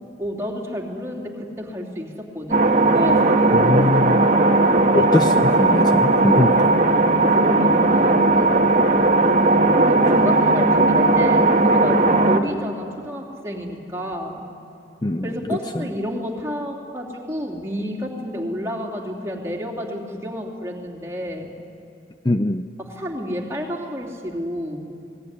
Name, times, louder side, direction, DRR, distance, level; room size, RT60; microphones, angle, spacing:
voice 1, 0.2-2.6 2.9-3.8 7.3-8.5 9.8-14.5 15.2-21.5 22.8-24.8, equal, 15° right, -1 dB, 3.1 m, -30 dB
sound 1, 2.5-12.4, right 2 dB, 40° right, 1.4 m, -17 dB
voice 2, 3.5-4.2 4.9-6.7 15.0-15.3 15.7-15.9 22.2-22.7, left 2 dB, 20° left, 7 dB, 0.6 m, -22 dB
28.0 x 20.0 x 9.7 m, 2.6 s
head